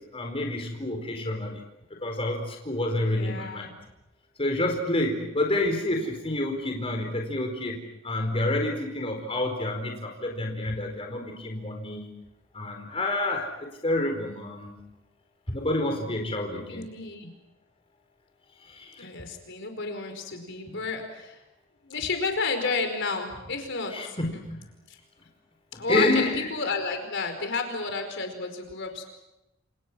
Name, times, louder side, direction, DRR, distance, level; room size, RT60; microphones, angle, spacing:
voice 1, 0.0-1.6 2.0-3.7 4.4-12.1 12.5-14.7 15.5-16.8 18.7-19.1 23.9-24.6 25.7-26.5, left 1 dB, 30° left, 2 dB, 4.5 m, -28 dB
voice 2, 3.0-3.7 16.5-17.3 19.0-21.4 21.8-24.4 24.9-25.0 25.8-29.1, left 4 dB, 60° left, 5 dB, 4.9 m, -32 dB
28.5 x 28.5 x 6.2 m, 0.93 s
head